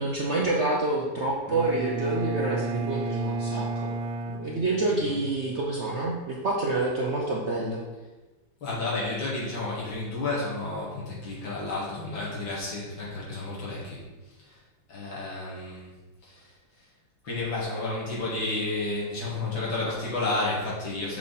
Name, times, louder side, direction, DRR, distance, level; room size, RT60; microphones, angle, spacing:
voice 1, 0.0-3.9 4.3-7.8, right 2 dB, 55° right, -3 dB, 0.7 m, -28 dB
Bowed string instrument, 1.5-5.3, right 3 dB, 90° right, 1.4 m, -32 dB
voice 2, 8.6-14.6 14.9-15.9 16.2-16.9 17.2-21.2, left 2 dB, 80° left, -6 dB, 2.9 m, -31 dB
6.2 x 5.6 x 4.1 m, 1.2 s
omnidirectional pair, 2.1 m